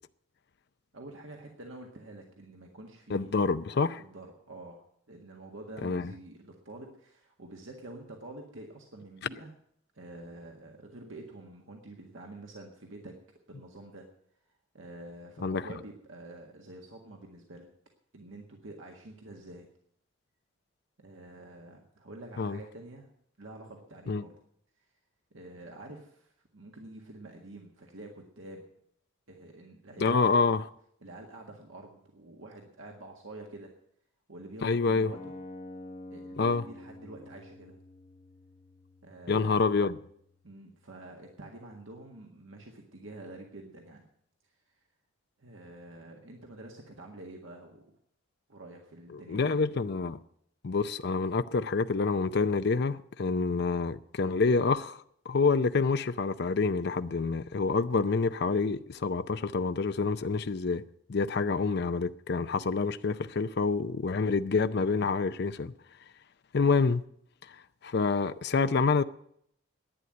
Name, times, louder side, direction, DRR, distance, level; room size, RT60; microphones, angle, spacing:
voice 1, 0.9-3.3 4.0-9.5 9.9-13.2 13.5-14.1 14.7-17.7 18.1-19.7 21.0-23.1 23.4-24.3 25.3-28.7 29.3-30.4 31.0-33.7 34.3-35.4 36.1-37.8 39.0-39.7 40.4-44.1 44.7-44.8 45.4-47.9 48.5-49.6, right 2 dB, 85° right, 1.7 m, -47 dB
voice 2, 3.1-4.0 5.8-6.1 15.4-15.6 22.4-22.6 24.1-24.2 30.0-30.6 34.6-35.1 36.4-36.6 39.3-40.0 49.3-50.2 50.6-60.8 61.1-65.7 66.5-67.0 67.8-69.0, left 4 dB, 55° left, 0.5 m, -27 dB
sound 1, 35.1-41.1, left 1 dB, 30° left, 1.2 m, -48 dB
11.5 x 9.4 x 8.9 m
head